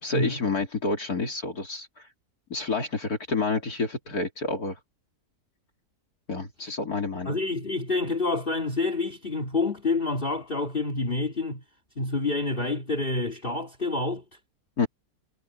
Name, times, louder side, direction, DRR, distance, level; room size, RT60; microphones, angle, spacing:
voice 1, 0.0-2.1 2.5-4.8 6.3-7.4 14.8-14.9, left 3 dB, 60° left, 3.5 m, -29 dB
voice 2, 7.2-11.6 12.0-14.2, left 3 dB, 30° left, 2.8 m, -28 dB
omnidirectional pair, 1.8 m